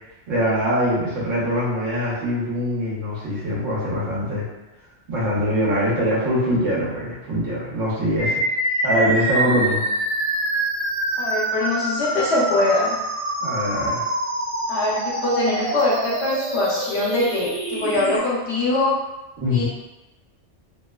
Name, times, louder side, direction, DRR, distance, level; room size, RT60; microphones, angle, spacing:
voice 1, 0.3-4.4 5.1-8.4 8.8-9.8 13.4-14.0 19.4-19.7, equal, 85° right, -7 dB, 1.2 m, -23 dB
sound 1, 8.2-18.2, right 1 dB, 65° right, 1.0 m, -25 dB
voice 2, 11.2-13.0 14.7-19.0 19.5-19.7, left 2 dB, 65° left, -5 dB, 0.9 m, -22 dB
2.9 x 2.1 x 2.2 m, 1.0 s
omnidirectional pair, 1.3 m